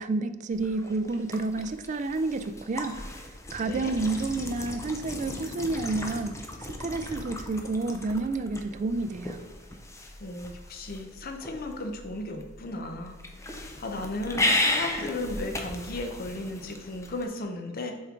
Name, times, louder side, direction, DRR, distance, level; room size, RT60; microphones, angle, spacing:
voice 1, 0.0-3.0 3.5-6.3 6.6-9.4, right 3 dB, 40° right, 10 dB, 0.4 m, -30 dB
sound 1, 0.5-17.3, left 1 dB, 15° left, 0.6 m, -35 dB
voice 2, 3.6-4.1 10.2-17.9, left 2 dB, 50° left, 4 dB, 0.7 m, -35 dB
6.9 x 4.4 x 3.7 m, 1.3 s
head